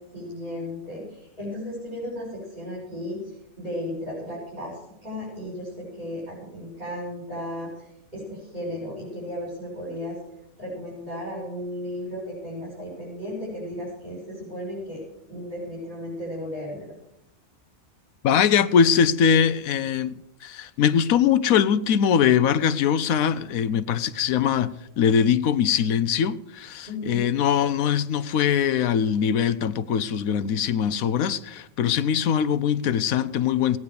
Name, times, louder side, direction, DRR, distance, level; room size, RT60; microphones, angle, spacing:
voice 1, 0.1-10.1 10.6-15.0 15.3-16.9 26.9-27.3, left 1 dB, 40° right, 6.3 m, -35 dB
voice 2, 18.2-33.8, left 8 dB, 85° left, 1.2 m, -22 dB
17.5 x 9.6 x 6.8 m
omnidirectional pair, 1.4 m